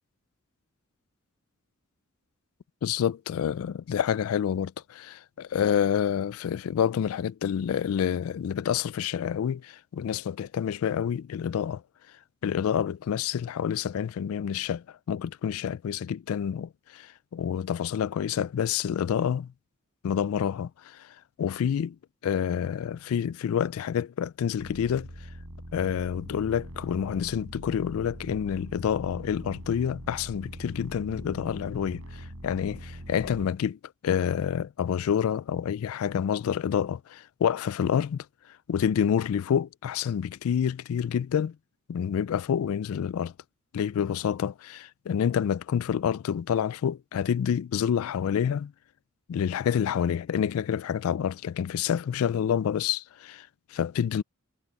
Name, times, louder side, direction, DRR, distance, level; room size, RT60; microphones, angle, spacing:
voice 1, 2.8-11.8 12.4-19.5 20.0-22.0 22.2-25.1 25.7-38.3 38.7-41.6 41.9-43.3 43.7-48.7 49.3-54.2, left 8 dB, 75° left, 0.3 m, -28 dB
sound 1, 24.6-33.5, equal, 70° right, 5.6 m, -42 dB
head